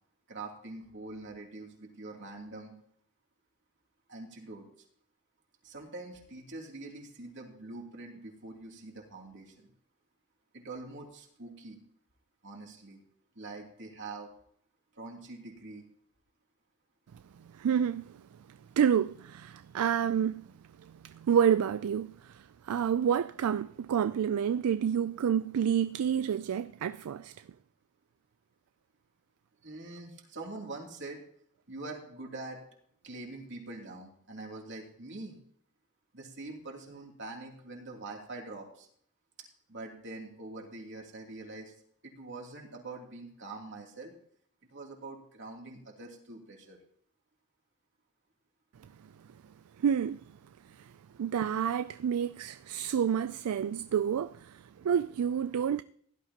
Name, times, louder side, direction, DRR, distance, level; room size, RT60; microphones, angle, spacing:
voice 1, 0.3-2.7 4.1-4.7 5.6-9.7 10.5-11.8 12.4-13.0 13.3-14.3 14.9-15.9 29.6-31.2 31.7-32.6 33.0-35.4 36.1-38.9 39.7-41.7 42.0-44.1 44.7-46.8, right 2 dB, 55° right, 2.8 m, -44 dB
voice 2, 17.5-18.2 18.8-20.5 20.8-27.3 49.8-50.2 50.7-50.9 51.2-55.8, right 8 dB, 75° right, 0.3 m, -29 dB
16.5 x 12.0 x 2.9 m
head